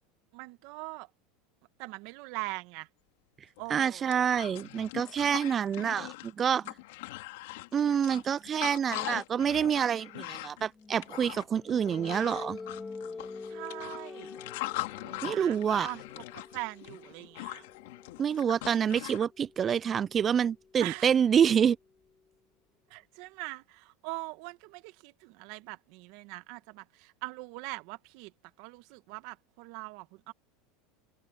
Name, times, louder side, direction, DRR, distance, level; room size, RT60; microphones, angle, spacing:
voice 1, 0.3-1.1 1.8-2.9 3.6-4.2 13.5-14.3 15.0-17.6 20.8-21.1 22.9-28.3 28.6-30.3, right 23 dB, 65° right, 1.8 m, -42 dB
sound 1, 3.6-3.7 3.9-19.2, left 20 dB, 75° left, 2.3 m, -41 dB
voice 2, 3.7-6.7 7.7-12.6 15.2-15.9 18.2-21.8, right 8 dB, 30° right, 0.3 m, -27 dB
sound 2, 10.7-22.3, left 4 dB, 15° left, 1.8 m, -47 dB
supercardioid pair, 110°, 0 cm